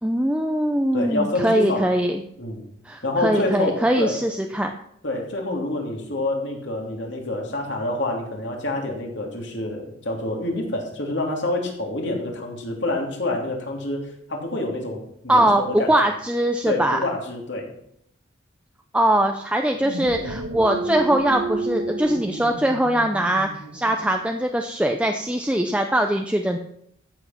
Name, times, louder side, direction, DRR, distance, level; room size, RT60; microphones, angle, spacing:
voice 1, 0.0-2.2 2.8-4.7 15.3-17.0 18.9-26.6, right 1 dB, 5° right, 4 dB, 0.5 m, -21 dB
voice 2, 0.9-1.9 2.4-2.6 3.0-4.2 5.0-15.9 16.6-17.7, left 2 dB, 60° left, 1 dB, 3.0 m, -27 dB
sound 1, 19.7-24.3, right 2 dB, 75° right, 1.5 m, -31 dB
14.0 x 7.7 x 5.9 m, 0.73 s
head